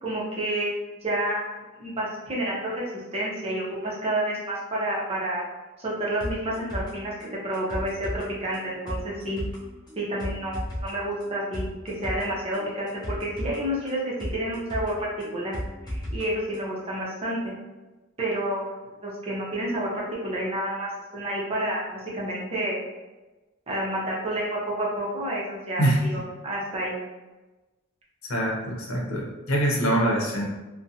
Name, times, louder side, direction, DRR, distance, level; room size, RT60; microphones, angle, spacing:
voice 1, 0.0-2.9 3.1-5.5 5.8-7.1 7.4-9.4 10.0-15.6 15.9-17.5 18.2-22.8 23.7-27.0, right 1 dB, 30° right, -5 dB, 0.7 m, -29 dB
sound 1, 6.2-16.2 16.5-16.6, equal, 20° left, 0.5 m, -35 dB
voice 2, 28.2-30.5, right 1 dB, 80° left, -2 dB, 0.7 m, -24 dB
2.6 x 2.1 x 2.6 m, 1.1 s
head